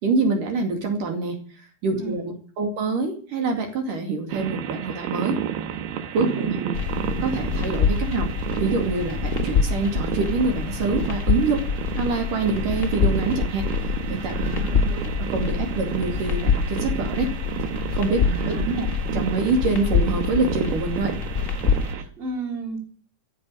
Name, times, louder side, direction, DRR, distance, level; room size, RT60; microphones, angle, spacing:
voice 1, 0.0-1.4 1.8-5.4 6.1-6.6 7.2-8.3 8.6-11.6 12.0-14.4 14.8-17.3 17.7-18.9 19.1-21.2, right 3 dB, 60° right, 3 dB, 3.8 m, -26 dB
sound 1, 4.3-22.0, right 9 dB, 90° right, 3.2 m, -31 dB
voice 2, 6.2-6.8 14.3-15.0 18.2-18.7 21.9-22.8, right 3 dB, 15° right, 2 dB, 3.3 m, -32 dB
sound 2, 6.7-21.9, left 6 dB, 50° left, 0.9 m, -26 dB
15.5 x 7.2 x 9.8 m, 0.43 s
omnidirectional pair, 4.4 m